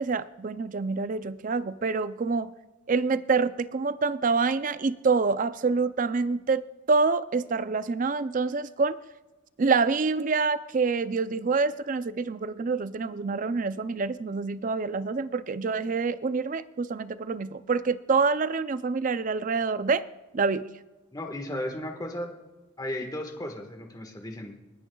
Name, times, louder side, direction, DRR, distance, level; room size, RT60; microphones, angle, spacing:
voice 1, 0.0-2.5 2.9-9.0 9.6-20.0 20.3-20.7, right 4 dB, 40° right, 14 dB, 0.5 m, -26 dB
voice 2, 21.1-22.3 22.8-24.5, left 1 dB, 20° left, 4 dB, 1.5 m, -35 dB
29.5 x 10.0 x 2.3 m, 1.2 s
head